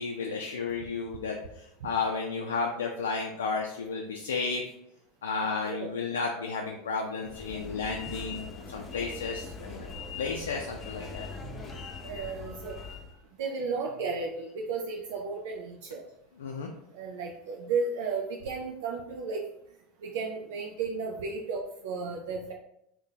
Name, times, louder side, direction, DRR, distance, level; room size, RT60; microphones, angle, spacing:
voice 1, 0.0-4.6 5.2-11.2 16.4-16.7, left 4 dB, 80° left, 0 dB, 0.3 m, -33 dB
voice 2, 5.6-5.9 11.0-11.1 11.4-12.9 13.4-16.0 16.9-19.5 20.0-22.5, right 4 dB, 70° right, 0 dB, 0.4 m, -34 dB
sound 1, 7.2-13.2, left 4 dB, 30° left, 0.6 m, -41 dB
2.7 x 2.2 x 3.8 m, 0.77 s
hypercardioid pair, 85°, 0 cm